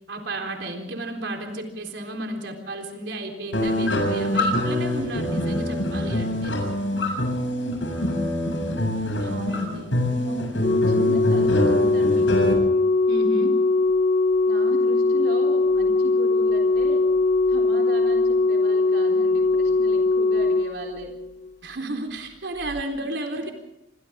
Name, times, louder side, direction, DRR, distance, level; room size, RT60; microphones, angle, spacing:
voice 1, 0.1-6.6 9.2-9.9 13.1-13.6 21.6-23.5, right 1 dB, 75° right, 3 dB, 3.9 m, -32 dB
sound 1, 3.5-12.5, left 1 dB, 85° left, 7.4 m, -25 dB
voice 2, 9.3-10.5 10.9-12.6 14.5-17.0 17.5-21.1, right 1 dB, 55° right, 0 dB, 3.7 m, -37 dB
Organ, 10.6-21.5 22.6-22.8, left 3 dB, 35° left, 0.6 m, -21 dB
28.0 x 25.0 x 3.7 m, 0.87 s
head